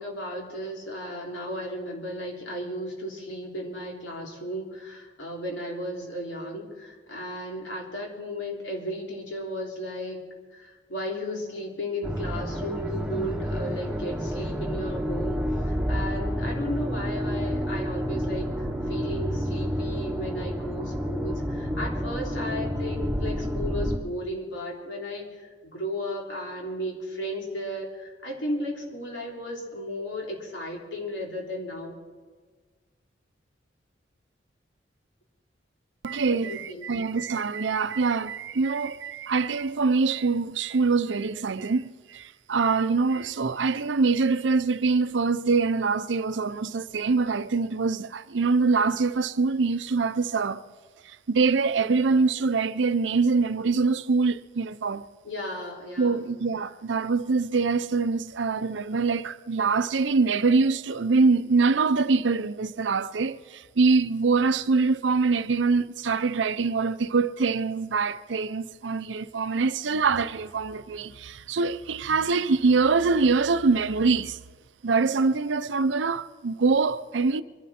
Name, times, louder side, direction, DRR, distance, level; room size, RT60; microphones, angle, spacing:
voice 1, 0.0-10.2 10.5-15.4 15.6-32.0 36.3-36.9 55.2-56.2, equal, 85° left, 3.4 m, -35 dB
sound 1, 12.0-24.0, equal, 5° right, 1.1 m, -29 dB
voice 2, 36.0-50.6 51.0-55.1 56.0-74.4 74.8-77.4, right 4 dB, 80° right, 0.6 m, -24 dB
24.5 x 11.5 x 4.3 m
head